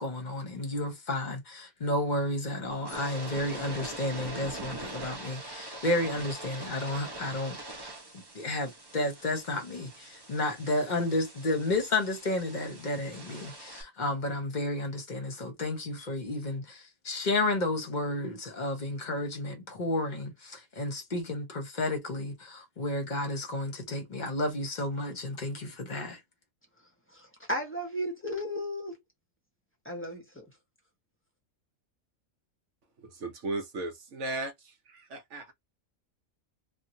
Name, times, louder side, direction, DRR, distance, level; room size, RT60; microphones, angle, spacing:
voice 1, 0.0-7.6 8.3-26.2, left 2 dB, 35° left, 1.0 m, -32 dB
sound 1, 2.7-13.8, right 2 dB, 25° right, 0.6 m, -43 dB
voice 2, 27.1-29.0 29.8-30.4, equal, 10° left, 0.8 m, -34 dB
voice 3, 33.0-35.5, right 2 dB, 65° right, 1.0 m, -36 dB
3.0 x 2.4 x 2.6 m
omnidirectional pair, 1.4 m